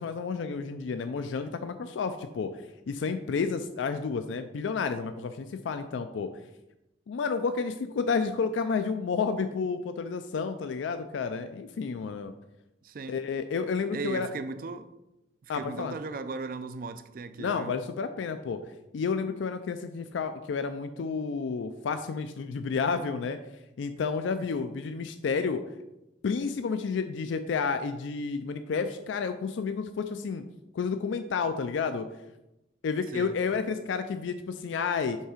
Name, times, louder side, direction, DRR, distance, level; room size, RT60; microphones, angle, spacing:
voice 1, 0.0-2.5 2.9-6.3 7.1-12.3 13.1-14.3 15.5-16.0 17.4-18.6 18.9-23.4 23.8-25.6 26.2-30.4 30.7-32.1 32.8-35.2, left 5 dB, 80° left, 0.4 m, -30 dB
voice 2, 12.8-13.2 13.9-14.9 15.4-17.8 33.1-33.4, right 4 dB, 50° right, 0.3 m, -37 dB
5.4 x 3.7 x 4.9 m
head